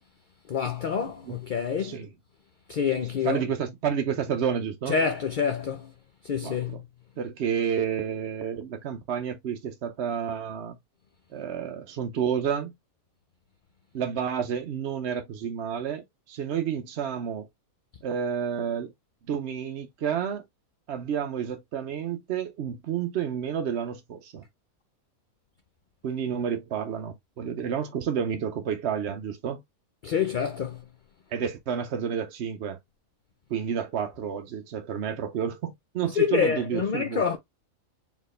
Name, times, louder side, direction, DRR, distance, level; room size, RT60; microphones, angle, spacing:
voice 1, 0.5-2.0 2.7-3.4 4.9-5.9 6.2-6.8 30.0-30.8 36.0-37.4, left 6 dB, 60° left, 0.5 m, -27 dB
voice 2, 3.2-5.0 6.4-6.8 7.2-10.8 11.3-12.7 13.9-17.5 18.0-18.9 19.3-20.4 20.9-24.4 26.0-29.6 31.3-32.8 33.5-37.4, right 8 dB, 60° right, 0.8 m, -30 dB
4.5 x 3.5 x 3.2 m
omnidirectional pair, 1.5 m